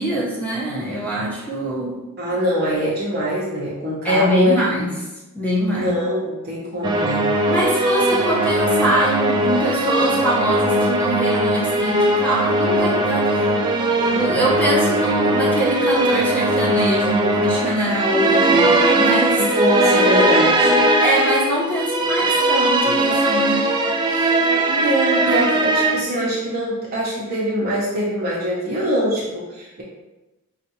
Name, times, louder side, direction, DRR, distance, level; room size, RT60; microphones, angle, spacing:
voice 1, 0.0-2.0 4.0-4.9 5.3-5.9 7.5-13.6 14.0-19.4 21.0-23.7, right 1 dB, 5° left, -5 dB, 0.9 m, -23 dB
voice 2, 2.2-4.5 5.7-7.3 19.4-20.8 24.1-24.3 24.7-29.8, equal, 45° right, -6 dB, 0.7 m, -23 dB
sound 1, 6.8-26.0, right 1 dB, 20° right, 0.3 m, -19 dB
5.3 x 2.5 x 2.8 m, 1.0 s
head